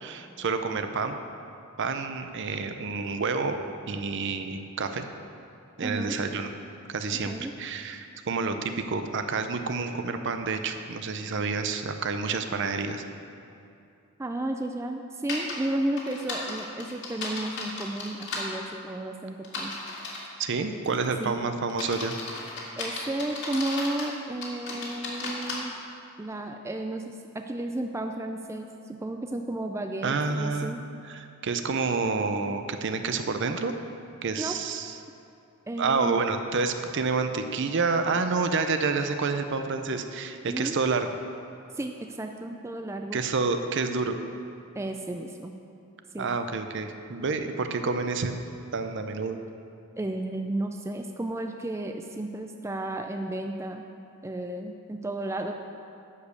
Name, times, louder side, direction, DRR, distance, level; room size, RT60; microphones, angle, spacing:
voice 1, 0.0-1.2 1.8-5.0 5.8-6.5 6.9-13.0 20.4-22.1 30.0-30.8 31.0-33.7 34.2-34.9 35.8-41.0 43.1-44.2 46.2-48.3 48.7-49.4, right 4 dB, 55° right, 7 dB, 0.6 m, -29 dB
voice 2, 5.8-6.2 7.3-7.5 14.2-19.8 21.2-21.4 22.8-25.7 26.2-30.8 34.4-34.6 35.7-36.2 40.5-40.8 41.7-43.2 44.8-45.5 46.1-46.3 50.0-53.8 54.2-55.5, right 1 dB, 15° right, 4 dB, 0.3 m, -33 dB
sound 1, 15.3-15.5 16.0-18.4 19.4-20.3 20.8-21.1 21.7-24.1 24.4-25.6, left 3 dB, 55° left, 2.0 m, -35 dB
11.0 x 5.1 x 6.9 m, 2.5 s
head